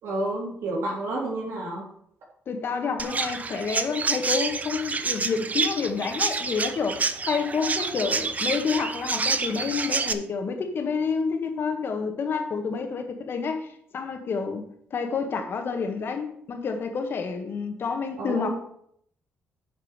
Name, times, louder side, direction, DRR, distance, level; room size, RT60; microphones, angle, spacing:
voice 1, 0.0-1.9 18.2-18.5, right 2 dB, 75° right, -3 dB, 3.6 m, -30 dB
voice 2, 2.5-14.6 14.9-18.5, left 5 dB, 55° left, 5 dB, 1.6 m, -29 dB
Chirp tweet, 3.0-10.1, right 4 dB, 35° right, 0.8 m, -28 dB
9.6 x 5.4 x 5.1 m, 0.68 s
cardioid pair, 80°, 5 cm